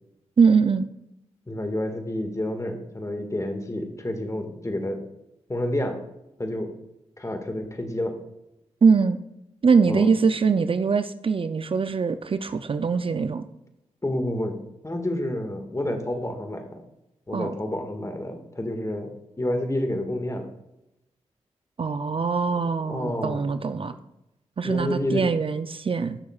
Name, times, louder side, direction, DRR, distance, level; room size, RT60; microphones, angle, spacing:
voice 1, 0.4-0.9 8.8-9.2 9.6-13.4 17.3-17.5 21.8-23.9 24.6-26.2, right 5 dB, 45° right, 11 dB, 0.5 m, -22 dB
voice 2, 1.5-5.0 5.5-6.0 6.4-6.7 7.2-8.2 9.9-10.1 14.0-14.6 14.8-16.8 17.3-20.5 22.9-24.0 24.6-25.3, left 1 dB, 25° left, 5 dB, 1.8 m, -29 dB
14.0 x 6.4 x 2.4 m, 0.88 s
supercardioid pair, 40°, 12 cm